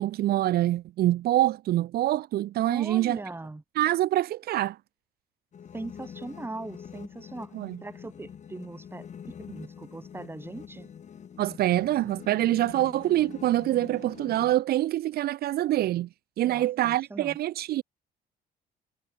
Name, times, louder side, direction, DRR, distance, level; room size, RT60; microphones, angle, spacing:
voice 1, 0.0-3.2 3.8-4.8 7.5-7.8 11.4-16.1 16.4-17.8, right 14 dB, 65° right, 1.0 m, -25 dB
voice 2, 2.6-3.6 5.7-7.5 7.8-9.1 9.4-10.9 16.4-17.4, right 2 dB, 15° right, 4.7 m, -40 dB
sound 1, 5.5-14.5, left 8 dB, 45° left, 3.6 m, -45 dB
cardioid pair, 110°, 17 cm